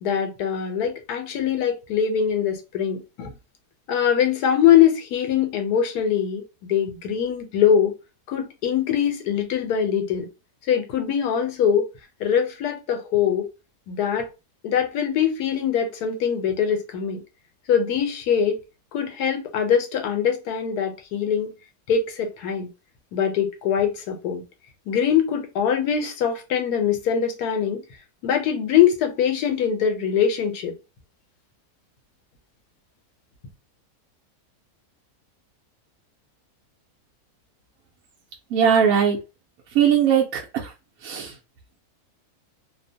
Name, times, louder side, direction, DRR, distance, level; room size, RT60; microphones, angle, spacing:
voice 1, 0.0-3.3 3.9-7.9 8.3-10.3 10.7-11.8 12.2-13.5 13.9-14.3 14.6-17.2 17.7-18.6 18.9-21.5 21.9-22.7 23.1-24.4 24.9-27.8 28.2-30.7, left 8 dB, 85° left, 1.2 m, -22 dB
voice 2, 38.5-39.2 39.7-40.7 41.0-41.3, right 8 dB, 70° right, 0.9 m, -19 dB
2.8 x 2.0 x 2.6 m
omnidirectional pair, 1.6 m